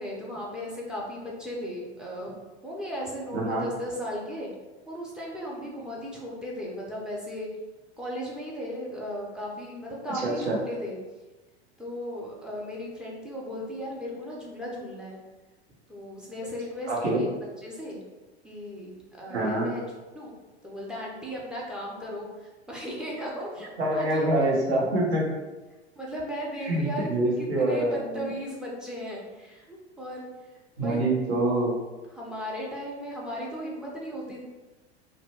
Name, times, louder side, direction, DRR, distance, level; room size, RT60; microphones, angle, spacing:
voice 1, 0.0-2.4 2.6-4.5 4.9-7.5 8.0-11.0 11.8-15.2 15.9-17.3 17.6-18.0 18.4-20.3 20.6-24.4 26.0-27.1 27.4-30.2 30.8-31.0 32.1-34.4, equal, ahead, -4 dB, 0.4 m, -36 dB
voice 2, 3.3-3.6 10.1-10.6 16.9-17.2 19.3-19.7 23.8-25.2 26.7-28.3 30.8-31.7, right 1 dB, 70° right, -4 dB, 1.0 m, -25 dB
2.6 x 2.1 x 2.9 m, 1.2 s
figure-of-eight pair, 85°, 33 cm